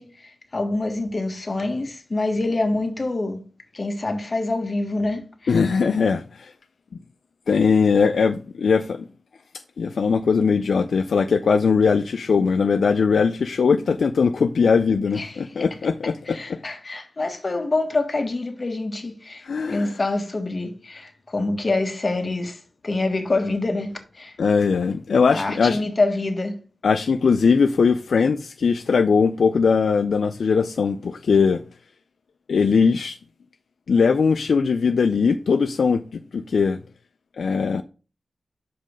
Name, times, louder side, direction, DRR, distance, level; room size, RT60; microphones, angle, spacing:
voice 1, 0.0-3.4 3.7-5.5 15.1-15.5 16.3-24.3 25.3-26.6, left 2 dB, 40° left, 1.5 m, -26 dB
voice 2, 5.5-6.5 7.5-9.1 9.8-16.4 19.4-19.9 24.4-25.8 26.8-31.6 32.5-33.2 33.9-36.8 37.4-37.8, left 5 dB, 80° left, 0.3 m, -20 dB
5.6 x 5.2 x 5.1 m
wide cardioid pair, 75°, 0 cm